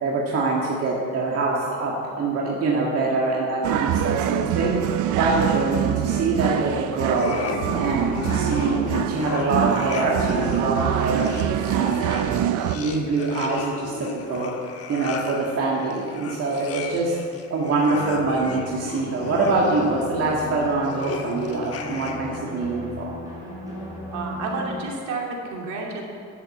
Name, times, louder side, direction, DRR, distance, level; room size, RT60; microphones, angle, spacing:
voice 1, 0.0-7.3 7.8-11.3 11.7-14.5 14.9-17.1 17.5-23.1, right 3 dB, 55° right, -3 dB, 1.8 m, -24 dB
sound 1, 3.6-12.8, right 11 dB, 90° right, 0.6 m, -25 dB
sound 2, 7.0-22.4, left 5 dB, 50° left, 1.3 m, -35 dB
sound 3, 17.9-24.9, left 1 dB, 10° right, 3.8 m, -36 dB
voice 2, 24.1-26.0, right 3 dB, 75° right, -1 dB, 2.8 m, -30 dB
11.5 x 8.1 x 8.2 m, 2.4 s
cardioid pair, 155°, 30 cm